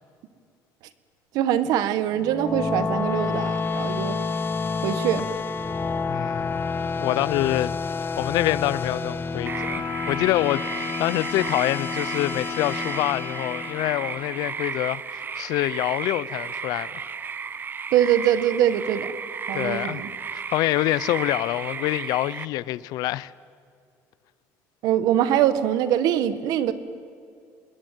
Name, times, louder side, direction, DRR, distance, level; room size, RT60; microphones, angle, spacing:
voice 1, 1.3-4.1 4.8-5.3 17.9-19.1 19.5-20.1 24.8-26.7, right 11 dB, 75° right, 1.6 m, -23 dB
sound 1, 2.1-14.5, left 4 dB, 35° left, 1.3 m, -29 dB
voice 2, 6.1-17.0 19.5-20.0 20.3-23.3, left 16 dB, 75° left, 0.7 m, -26 dB
sound 2, 9.5-22.5, right 6 dB, 30° right, 0.7 m, -34 dB
27.0 x 21.5 x 9.3 m
cardioid pair, 105°, 7 cm